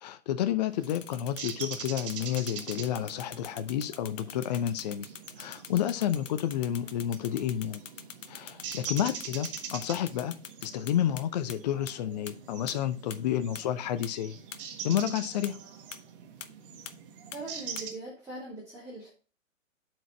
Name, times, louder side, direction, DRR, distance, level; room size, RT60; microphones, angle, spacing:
voice 1, 0.0-5.0 5.4-7.8 8.3-14.4 14.8-15.6, left 10 dB, 35° left, 0.6 m, -30 dB
sound 1, 0.7-17.9, right 7 dB, 40° right, 1.5 m, -44 dB
sound 2, 0.8-11.2 11.5-11.6 11.9-12.0 12.3-12.4 12.7-12.8 13.1-13.2 13.5-13.6 14.0-14.1 14.5-14.6 15.0-15.1 15.4-15.5 15.9-16.0 16.4-16.5 16.9-17.0 17.3-17.4 17.8-17.9, left 7 dB, 70° left, 0.9 m, -43 dB
voice 2, 17.3-19.1, right 2 dB, 5° right, 2.5 m, -42 dB
7.7 x 4.8 x 4.0 m
figure-of-eight pair, 125°, 39 cm